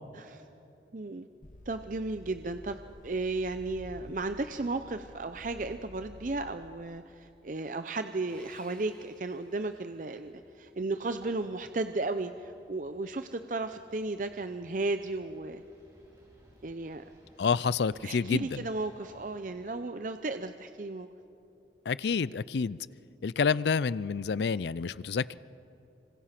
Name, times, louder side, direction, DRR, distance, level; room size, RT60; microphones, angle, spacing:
voice 1, 0.1-0.4 0.9-1.3 1.7-2.8 3.0-15.6 16.6-17.0 18.0-21.1, right 2 dB, 45° right, 9 dB, 0.6 m, -34 dB
sound 1, 1.4-6.8, left 1 dB, 45° left, 0.9 m, -51 dB
sound 2, 8.0-19.4, equal, 20° right, 4.4 m, -61 dB
Sawing, 8.3-10.2, left 1 dB, 5° left, 2.3 m, -58 dB
voice 2, 17.4-18.6 21.9-22.8 23.2-25.3, left 5 dB, 75° left, 20 dB, 0.4 m, -28 dB
26.5 x 25.0 x 5.9 m, 2.8 s
head